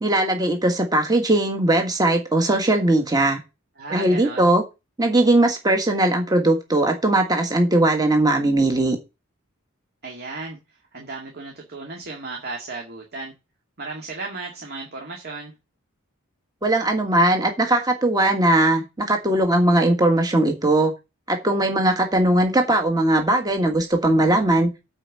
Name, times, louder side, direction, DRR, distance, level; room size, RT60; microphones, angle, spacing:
voice 1, 0.0-3.4 3.9-4.6 5.0-9.0 16.6-20.9 21.3-24.7, right 1 dB, 20° right, 4 dB, 1.5 m, -19 dB
voice 2, 3.8-4.5 10.0-10.6 10.9-13.3 13.8-15.5, right 3 dB, 50° right, 0 dB, 2.1 m, -34 dB
9.0 x 4.5 x 7.5 m, 0.25 s
head